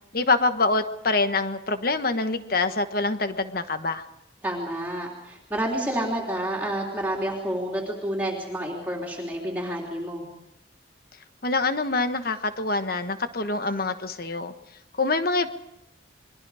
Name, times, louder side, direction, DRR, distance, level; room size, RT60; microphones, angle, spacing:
voice 1, 0.1-4.0 11.4-14.5 15.0-15.5, left 3 dB, 50° left, 9 dB, 1.3 m, -25 dB
voice 2, 4.4-10.3, right 1 dB, 10° right, -2 dB, 3.2 m, -29 dB
29.0 x 22.5 x 4.9 m, 0.90 s
head